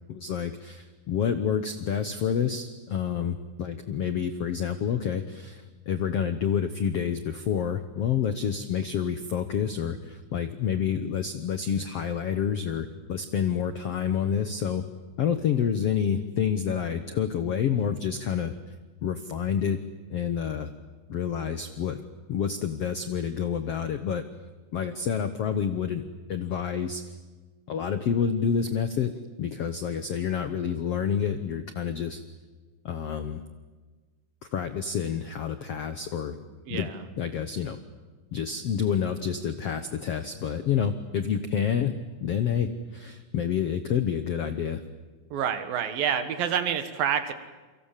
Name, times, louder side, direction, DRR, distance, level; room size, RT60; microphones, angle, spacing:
voice 1, 0.1-14.9 15.2-18.5 19.0-19.8 20.1-20.7 21.1-22.0 22.3-24.2 24.7-26.0 26.3-27.0 27.7-32.2 32.8-33.4 34.5-36.4 36.7-37.8 38.3-41.9 42.2-44.8, left 8 dB, 75° left, 10 dB, 1.4 m, -28 dB
voice 2, 45.3-47.3, right 8 dB, 70° right, 10 dB, 3.3 m, -27 dB
28.5 x 25.0 x 7.5 m, 1.3 s
omnidirectional pair, 4.5 m